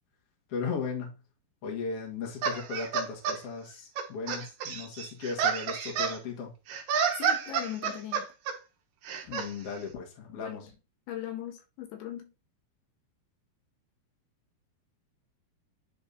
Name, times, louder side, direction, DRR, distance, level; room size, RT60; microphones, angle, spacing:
voice 1, 0.5-1.2 1.6-6.5 9.2-10.7, left 5 dB, 50° left, 2.0 m, -36 dB
sound 1, 2.4-3.4 4.0-6.2 6.7-8.6 9.1-9.5, right 6 dB, 70° right, 2.5 m, -30 dB
voice 2, 7.2-8.3 10.3-10.6 11.1-12.3, left 11 dB, 80° left, 2.7 m, -39 dB
10.5 x 3.6 x 2.7 m
omnidirectional pair, 4.6 m